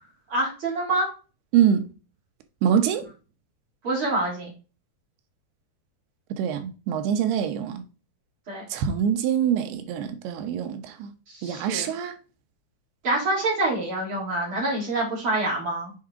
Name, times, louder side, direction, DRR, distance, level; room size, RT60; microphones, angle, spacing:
voice 1, 0.3-1.1 3.8-4.5 8.5-8.6 11.3-11.9 13.0-15.9, right 2 dB, 35° right, 3.4 m, -26 dB
voice 2, 1.5-1.9 2.6-3.1 6.3-7.8 8.7-11.1 11.4-12.2, right 9 dB, 85° right, 2.9 m, -24 dB
7.6 x 4.8 x 3.6 m
omnidirectional pair, 4.5 m